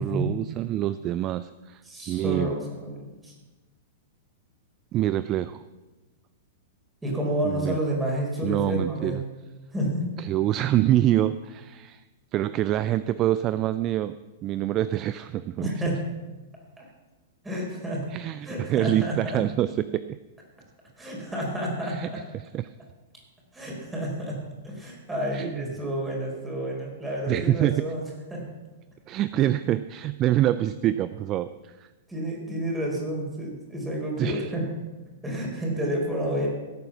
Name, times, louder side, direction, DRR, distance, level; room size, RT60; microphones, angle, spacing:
voice 1, 0.0-1.8 2.1-2.5 4.9-5.6 7.4-7.8 8.4-9.2 10.2-12.0 12.3-14.2 14.4-15.7 18.1-20.2 21.9-22.1 22.5-22.7 25.3-25.6 27.3-27.8 29.1-31.9 34.2-34.5, right 13 dB, 30° right, 15 dB, 0.4 m, -26 dB
voice 2, 1.8-3.3 7.0-9.2 9.7-10.1 15.6-16.0 16.8-16.9 17.4-18.0 18.4-19.4 21.0-22.2 23.5-24.4 24.6-28.0 28.3-28.4 29.4-29.5 32.1-34.7 35.2-36.5, right 1 dB, 10° right, -1 dB, 4.7 m, -30 dB
16.5 x 8.9 x 5.9 m, 1.2 s
figure-of-eight pair, 100°, 0 cm